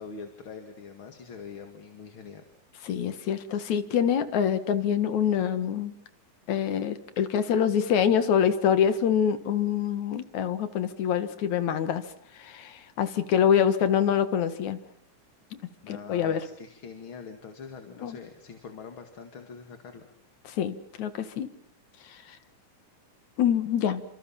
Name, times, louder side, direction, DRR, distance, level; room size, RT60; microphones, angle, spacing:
voice 1, 0.0-2.4 15.8-20.1, left 5 dB, 45° left, 5 dB, 2.7 m, -44 dB
voice 2, 2.8-5.9 6.5-12.0 12.3-14.8 15.5-15.6 15.9-16.4 18.0-18.2 20.5-21.5 22.1-22.4 23.4-24.0, left 8 dB, 70° left, 11 dB, 2.9 m, -25 dB
29.5 x 26.5 x 5.7 m, 0.64 s
omnidirectional pair, 3.5 m